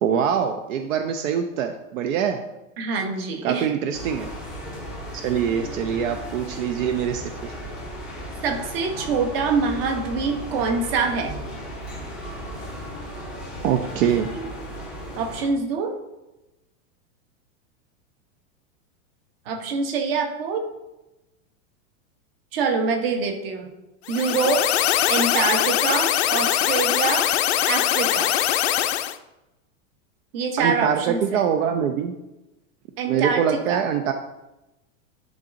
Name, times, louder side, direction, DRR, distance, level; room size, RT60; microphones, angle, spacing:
voice 1, 0.0-2.4 3.4-4.3 5.1-7.6 13.6-14.3 30.6-32.1 33.1-34.1, right 8 dB, 75° right, 6 dB, 0.6 m, -24 dB
voice 2, 2.8-3.7 8.4-11.4 14.3-14.5 15.2-15.9 19.5-20.6 22.5-23.7 24.1-24.6 25.1-27.3 27.7-28.3 30.3-31.4 33.0-33.8, right 4 dB, 45° right, 5 dB, 1.0 m, -25 dB
sound 1, 3.9-15.5, equal, 5° right, 0.4 m, -35 dB
sound 2, 24.1-29.2, left 12 dB, 55° left, 0.5 m, -22 dB
10.5 x 4.0 x 2.6 m, 0.96 s
supercardioid pair, 175°, 40 cm